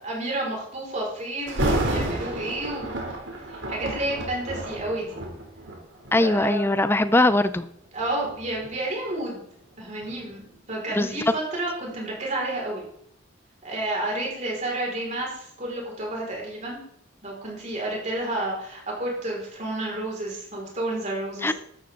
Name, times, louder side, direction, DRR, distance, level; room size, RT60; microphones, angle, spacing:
voice 1, 0.0-2.9 3.5-5.2 6.1-6.7 7.9-9.5 9.8-12.8 13.6-16.8 17.2-21.5, right 1 dB, 35° right, -2 dB, 5.2 m, -30 dB
Thunder, 1.5-6.4 7.1-7.3 8.0-10.8 11.1-11.2, right 1 dB, 65° right, 3.0 m, -31 dB
voice 2, 6.1-7.7 10.9-11.1 21.4-21.5, left 2 dB, 10° left, 12 dB, 0.5 m, -21 dB
13.5 x 12.5 x 3.8 m, 0.68 s
head